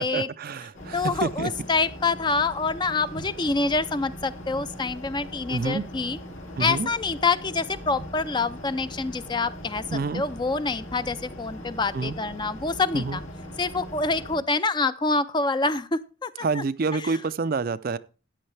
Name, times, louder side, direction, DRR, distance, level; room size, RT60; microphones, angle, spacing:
voice 1, 0.0-1.5 5.5-5.8 6.6-6.9 9.9-10.2 11.9-12.2 12.9-13.2 16.4-18.0, right 4 dB, 45° right, 0.4 m, -28 dB
sound 1, 0.7-14.4, equal, 80° left, 2.4 m, -40 dB
voice 2, 0.9-6.2 6.6-13.2 13.6-16.6 16.9-17.2, left 3 dB, 20° left, 0.5 m, -26 dB
13.5 x 9.6 x 3.3 m
head